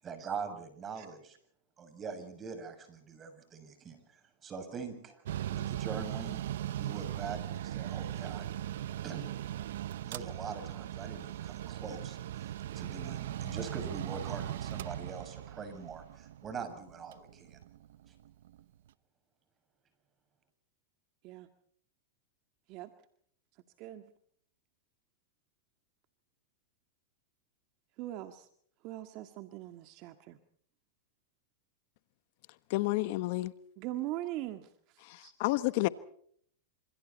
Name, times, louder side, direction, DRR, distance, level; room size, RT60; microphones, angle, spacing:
voice 1, 0.0-1.4 1.8-5.2 5.5-6.4 6.8-8.5 9.0-9.3 10.0-17.6 18.1-18.2, right 5 dB, 25° right, 8 dB, 7.0 m, -43 dB
Mechanical fan, 5.2-18.6, right 12 dB, 75° right, 0.9 m, -39 dB
voice 2, 28.0-28.5 28.8-30.4 33.8-34.7 35.2-35.3, right 15 dB, 45° right, 8 dB, 1.9 m, -40 dB
voice 3, 32.7-33.5 35.0-35.9, left 19 dB, 55° left, 15 dB, 1.2 m, -30 dB
27.5 x 27.0 x 4.3 m, 0.63 s
hypercardioid pair, 120°, 0 cm